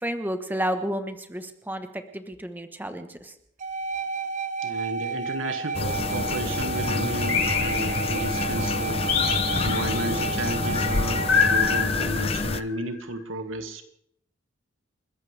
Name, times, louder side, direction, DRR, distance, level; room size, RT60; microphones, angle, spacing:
voice 1, 0.0-3.3, equal, 10° right, 8 dB, 1.1 m, -31 dB
sound 1, 3.6-11.9, right 3 dB, 40° right, 0.9 m, -31 dB
voice 2, 4.6-9.2 9.6-13.8, right 1 dB, 90° right, 7 dB, 1.8 m, -33 dB
sound 2, 5.7-12.6, left 3 dB, 30° left, 0.5 m, -28 dB
sound 3, 7.3-8.4 9.1-10.2 11.3-12.8, left 6 dB, 70° left, 4.6 m, -26 dB
30.0 x 14.0 x 3.4 m, 0.73 s
head